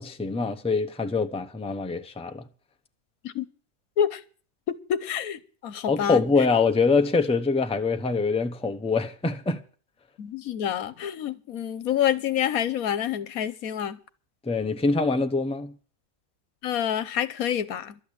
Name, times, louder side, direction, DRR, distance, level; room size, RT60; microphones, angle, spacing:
voice 1, 0.0-2.4 5.9-9.6 14.4-15.7, left 4 dB, 5° left, 0.7 m, -24 dB
voice 2, 4.7-6.2 10.2-14.0 16.6-18.0, left 9 dB, 75° left, 1.3 m, -27 dB
12.5 x 8.2 x 8.7 m
omnidirectional pair, 1.5 m